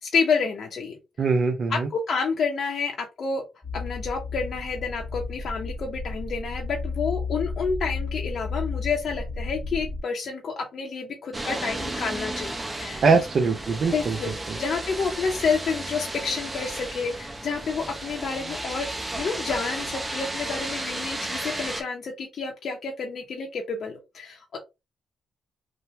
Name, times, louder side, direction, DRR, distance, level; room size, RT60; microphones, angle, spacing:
voice 1, 0.0-1.0 1.7-3.4 3.7-13.0 13.9-14.3 14.6-18.9 19.1-24.6, left 5 dB, 60° left, 1 dB, 0.7 m, -29 dB
voice 2, 1.2-1.9 13.0-14.2, right 4 dB, 55° right, 3 dB, 0.5 m, -22 dB
sound 1, 3.6-10.0, left 3 dB, ahead, 1.0 m, -32 dB
sound 2, 11.3-21.8, right 1 dB, 20° right, 0.7 m, -33 dB
3.1 x 2.1 x 2.8 m, 0.24 s
cardioid pair, 80°, 0 cm